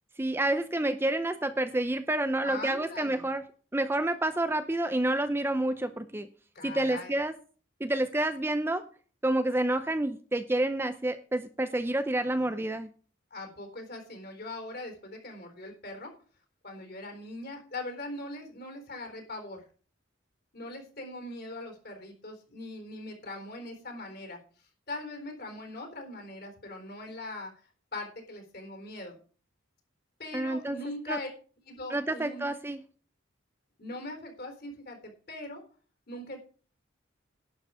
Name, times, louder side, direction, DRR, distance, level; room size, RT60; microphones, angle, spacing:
voice 1, 0.2-3.4 3.7-6.3 6.6-7.3 7.8-8.8 9.2-12.9 30.3-30.8 31.1-31.2 31.9-32.8, right 1 dB, 10° right, 9 dB, 0.6 m, -29 dB
voice 2, 2.4-3.3 6.5-7.1 12.2-12.6 13.3-16.1 16.6-19.6 20.5-27.5 27.9-29.2 30.2-31.3 31.7-32.5 33.8-35.6 36.1-36.4, left 2 dB, 50° left, 4 dB, 4.0 m, -41 dB
11.5 x 9.1 x 4.9 m, 0.41 s
head